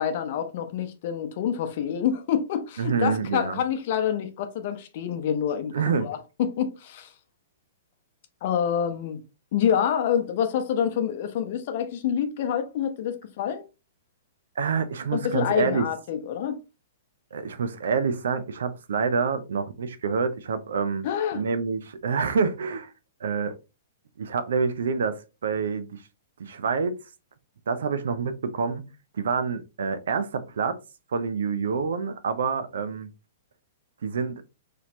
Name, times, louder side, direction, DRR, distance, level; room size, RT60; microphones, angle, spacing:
voice 1, 0.0-7.1 8.4-9.2 9.5-13.7 15.1-16.6 21.0-21.4, left 8 dB, 50° left, 0.7 m, -27 dB
voice 2, 2.8-3.6 5.7-6.1 14.6-15.8 17.3-21.0 21.3-22.9 23.2-23.6 24.2-26.0 26.4-27.0 27.7-28.9 29.1-30.8 31.1-33.1 34.0-34.4, right 5 dB, 65° right, 0.5 m, -27 dB
4.0 x 3.2 x 2.8 m
figure-of-eight pair, 110°, 0 cm